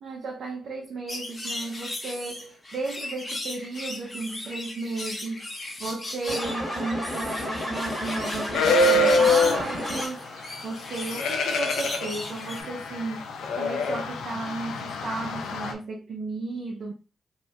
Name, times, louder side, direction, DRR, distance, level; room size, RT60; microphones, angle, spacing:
voice 1, 0.0-5.5 5.8-13.3 13.5-16.9, right 3 dB, 65° right, 0.7 m, -34 dB
sound 1, 1.1-12.6, left 2 dB, 30° left, 1.0 m, -37 dB
sound 2, 6.3-10.4, equal, 10° left, 1.6 m, -32 dB
sound 3, 8.5-9.8 10.9-15.7, left 2 dB, 80° left, 0.5 m, -25 dB
2.8 x 2.5 x 3.2 m
cardioid pair, 65°, 0 cm